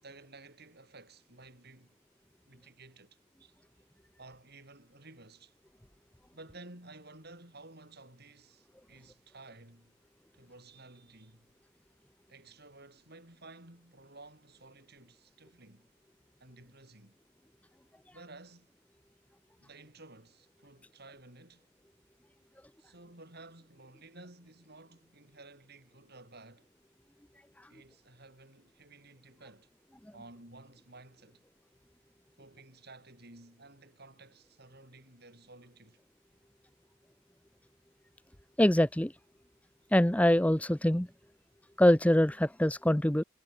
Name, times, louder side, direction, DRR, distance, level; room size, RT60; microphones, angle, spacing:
voice 1, 0.0-2.0 2.5-3.6 4.2-5.5 6.3-9.9 10.3-11.5 12.3-15.9 16.4-17.2 18.1-18.7 19.6-21.7 22.8-26.7 27.7-29.7 30.1-31.4 32.4-36.0, right 2 dB, 50° right, 7.6 m, -54 dB
voice 2, 38.6-39.1 39.9-41.1 41.8-43.2, left 1 dB, 5° left, 0.8 m, -24 dB
head